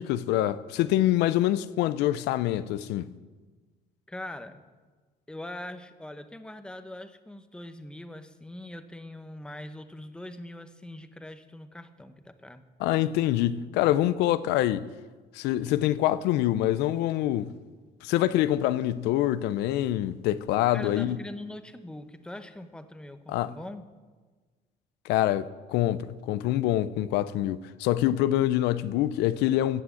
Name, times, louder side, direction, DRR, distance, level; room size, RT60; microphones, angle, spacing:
voice 1, 0.0-3.1 12.8-14.9 15.3-17.5 18.0-21.2 23.3-23.5 25.0-29.8, left 13 dB, 90° left, 0.5 m, -25 dB
voice 2, 4.1-4.6 5.3-12.6 20.7-23.8, left 1 dB, 5° left, 0.9 m, -42 dB
15.0 x 6.2 x 8.3 m
cardioid pair, 110°, 17 cm